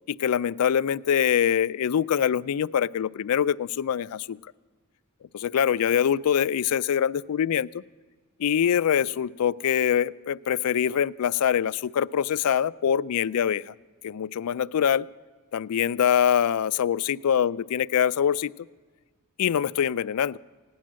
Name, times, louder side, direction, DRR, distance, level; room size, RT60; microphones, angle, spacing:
voice 1, 0.1-4.4 5.3-7.8 8.4-13.7 14.0-15.1 15.5-18.5 19.4-20.4, left 8 dB, 75° left, 17 dB, 0.4 m, -24 dB
16.5 x 10.5 x 7.4 m, 1.4 s
head